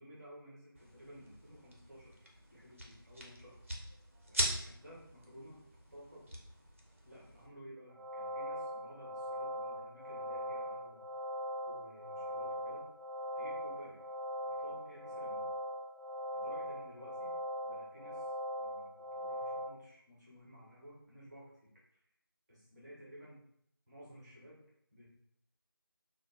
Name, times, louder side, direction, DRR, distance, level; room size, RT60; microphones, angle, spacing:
voice 1, 0.0-2.2 2.5-3.6 4.3-5.6 5.9-6.3 7.0-11.0 11.6-12.8 13.3-14.0 14.4-15.5 16.3-17.3 17.6-18.3 18.6-22.0 22.5-23.4 23.9-24.6 24.9-25.1, equal, 10° right, -8 dB, 1.0 m, -55 dB
sound 1, 0.7-7.5, right 1 dB, 35° right, 0.6 m, -42 dB
sound 2, 7.9-19.7, equal, 80° right, 0.4 m, -40 dB
4.9 x 2.1 x 2.4 m, 0.72 s
figure-of-eight pair, 175°, 13 cm